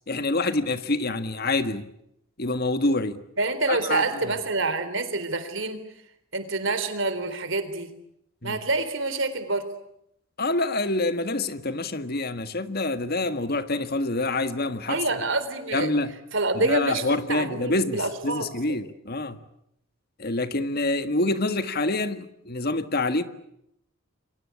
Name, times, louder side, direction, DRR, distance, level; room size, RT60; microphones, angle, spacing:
voice 1, 0.1-1.9 2.4-3.2 3.7-4.1 8.4-8.6 10.4-15.0 15.7-16.1 16.6-19.4 20.2-23.2, left 2 dB, 50° left, 1.6 m, -26 dB
voice 2, 3.4-5.8 6.3-7.9 8.4-9.7 14.9-15.9 16.3-17.0 17.3-18.5, right 3 dB, 65° right, 3.8 m, -27 dB
28.5 x 23.5 x 8.4 m
head